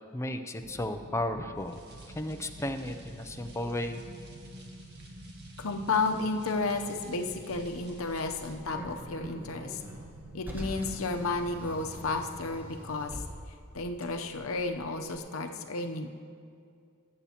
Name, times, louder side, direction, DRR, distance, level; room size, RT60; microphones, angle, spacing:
voice 1, 0.1-1.8 2.1-4.0, left 1 dB, 15° left, 7 dB, 0.5 m, -34 dB
sound 1, 0.6-12.3, right 1 dB, 75° right, 0.9 m, -49 dB
sound 2, 1.5-8.6, right 2 dB, 55° right, 1.6 m, -57 dB
voice 2, 5.6-9.8 10.3-13.2 13.7-16.1, left 3 dB, 90° left, 5 dB, 0.8 m, -32 dB
Car, 7.5-15.2, equal, 10° right, 1.4 m, -45 dB
20.0 x 8.3 x 2.9 m, 2.3 s
head